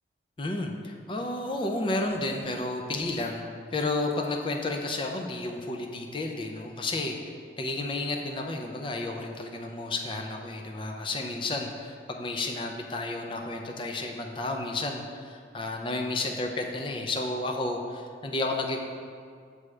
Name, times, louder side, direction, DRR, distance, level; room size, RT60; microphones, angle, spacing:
voice 1, 0.4-3.4 3.7-7.1 7.6-18.8, left 2 dB, 30° left, 3 dB, 0.4 m, -31 dB
6.4 x 4.8 x 3.2 m, 2.2 s
head